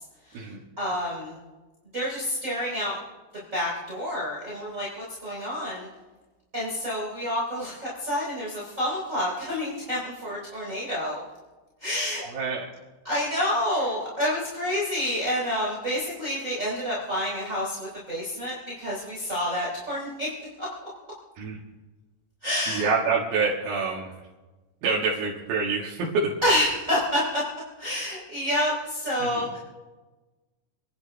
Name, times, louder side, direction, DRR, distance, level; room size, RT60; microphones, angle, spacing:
voice 1, 0.8-1.4 1.9-3.0 3.5-5.9 6.5-11.2 11.8-12.3 13.0-20.3 20.6-20.7 22.4-22.9 26.4-27.4 27.8-29.6, left 1 dB, 20° right, -7 dB, 3.9 m, -28 dB
voice 2, 22.7-24.1 24.8-26.1 29.2-29.4, right 4 dB, 70° right, -5 dB, 3.5 m, -26 dB
28.5 x 11.0 x 3.5 m, 1.2 s
omnidirectional pair, 4.5 m